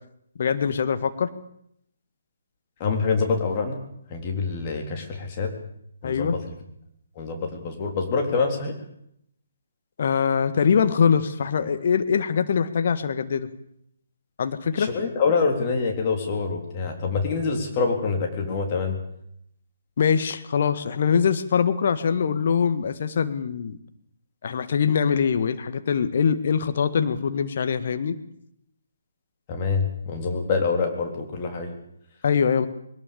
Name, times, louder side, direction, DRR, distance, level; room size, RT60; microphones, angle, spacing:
voice 1, 0.4-1.3 6.0-6.4 10.0-13.5 14.4-14.9 20.0-23.8 24.4-28.1 32.2-32.7, left 6 dB, 45° left, 11 dB, 1.7 m, -23 dB
voice 2, 2.8-3.8 4.1-5.5 6.0-6.6 7.2-8.7 14.8-19.0 29.5-31.7, left 4 dB, 30° left, 2 dB, 3.9 m, -26 dB
22.0 x 20.0 x 7.2 m, 0.74 s
figure-of-eight pair, 135°, 0 cm